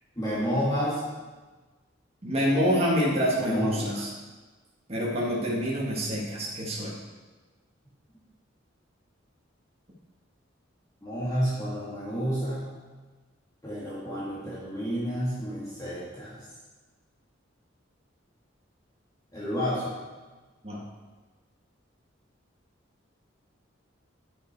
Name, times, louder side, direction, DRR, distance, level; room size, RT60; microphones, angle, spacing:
voice 1, 0.2-1.0 3.4-4.0 11.0-12.7 13.6-16.4 19.3-19.9, equal, 20° left, -9 dB, 2.0 m, -30 dB
voice 2, 2.2-4.1 4.9-7.0 20.6-20.8, equal, 30° right, -4 dB, 1.8 m, -26 dB
9.5 x 6.4 x 4.6 m, 1.3 s
head